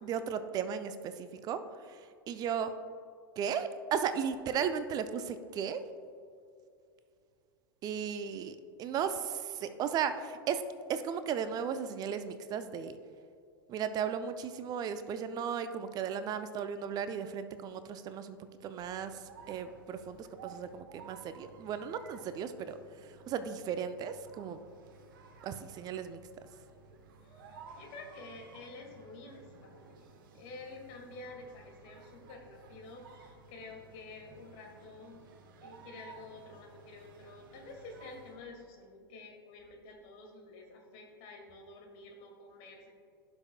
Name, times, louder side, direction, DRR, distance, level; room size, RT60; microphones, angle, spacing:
voice 1, 0.0-2.7 3.4-5.8 7.8-10.6 10.9-13.0 13.7-24.6 25.4-26.2, right 7 dB, 30° right, 11 dB, 0.5 m, -36 dB
sound 1, 18.8-38.5, right 4 dB, 60° right, 1.0 m, -55 dB
voice 2, 27.2-30.1 30.3-35.2 35.6-42.9, left 3 dB, 45° left, 1 dB, 2.0 m, -50 dB
15.5 x 6.1 x 2.2 m, 2.4 s
figure-of-eight pair, 90°, 12 cm